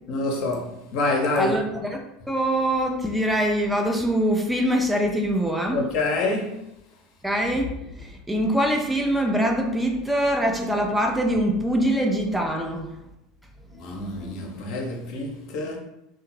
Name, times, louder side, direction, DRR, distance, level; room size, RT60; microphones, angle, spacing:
voice 1, 0.1-1.6 5.7-6.7 13.7-15.8, left 2 dB, 50° left, 0.6 m, -27 dB
voice 2, 1.4-2.0 2.3-5.8 7.2-12.9, equal, 5° right, 0.4 m, -23 dB
2.7 x 2.1 x 3.0 m
figure-of-eight pair, 75°, 0 cm